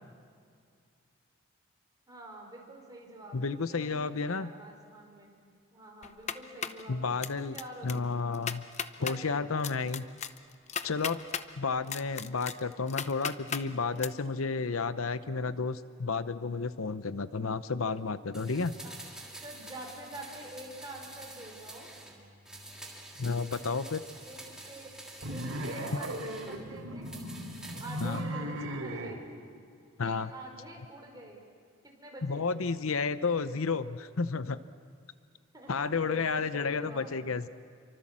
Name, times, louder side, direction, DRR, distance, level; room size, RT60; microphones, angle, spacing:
voice 1, 2.1-5.4 5.7-8.1 9.0-9.6 18.8-18.9 19.4-21.9 24.2-24.9 25.3-27.1 27.8-29.3 30.0-31.5 31.8-32.4 35.5-37.1, right 1 dB, 20° right, 0 dB, 4.8 m, -47 dB
voice 2, 3.3-4.5 6.9-7.6 7.8-8.7 9.0-10.1 10.8-11.2 11.6-18.8 23.2-24.0 28.0-28.2 30.0-30.3 32.2-34.6 35.7-37.5, left 4 dB, 80° left, 13 dB, 0.8 m, -31 dB
sound 1, 6.0-6.8 7.2-7.6 7.9-8.0 8.3-9.2 9.6-11.5 11.9-13.6 14.0-14.1, left 7 dB, 35° left, 0.7 m, -35 dB
sound 2, 18.3-22.2 22.5-26.6 27.0-28.3 28.6-28.7, right 2 dB, 5° right, 3.0 m, -47 dB
sound 3, 25.2-29.2, right 1 dB, 80° right, 3.3 m, -37 dB
28.5 x 24.5 x 7.5 m, 2.3 s
head